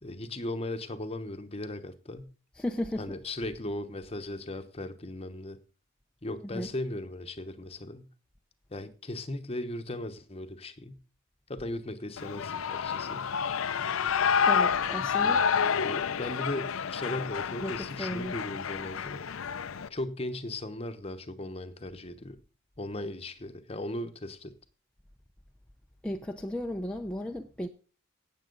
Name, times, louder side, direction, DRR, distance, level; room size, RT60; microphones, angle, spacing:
voice 1, 0.0-2.3 3.0-5.6 6.2-8.1 8.7-11.0 11.5-13.3 15.0-15.4 15.7-19.2 19.9-22.4 22.8-24.5, left 1 dB, 30° left, 0.9 m, -37 dB
voice 2, 2.6-3.2 6.5-6.7 14.5-15.5 17.6-18.3 26.0-27.7, left 1 dB, 5° left, 0.5 m, -35 dB
Shout / Cheering, 12.2-19.9, left 6 dB, 70° left, 0.5 m, -29 dB
17.0 x 7.3 x 3.9 m
head